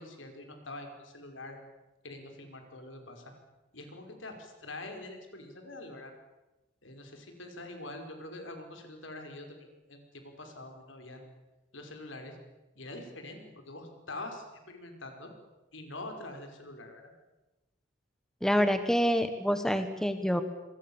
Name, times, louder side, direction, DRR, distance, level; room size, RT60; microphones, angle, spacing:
voice 1, 0.0-1.6 2.0-3.3 3.7-6.1 6.8-11.2 11.7-12.4 12.8-15.3 15.7-17.1, left 2 dB, 80° left, 5 dB, 5.3 m, -45 dB
voice 2, 18.4-20.4, equal, 5° left, 8 dB, 1.3 m, -27 dB
27.0 x 23.5 x 7.3 m, 1.0 s
head